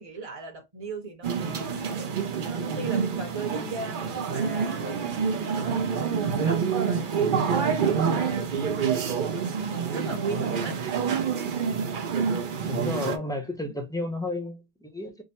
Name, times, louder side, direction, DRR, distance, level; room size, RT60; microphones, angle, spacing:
voice 1, 0.0-5.8 6.2-10.8 13.4-13.8, right 3 dB, 30° right, 1.0 m, -38 dB
sound 1, 1.2-13.2, right 6 dB, 55° right, 0.7 m, -27 dB
voice 2, 12.7-15.2, left 2 dB, 5° left, 0.6 m, -32 dB
3.6 x 2.0 x 4.1 m
omnidirectional pair, 1.2 m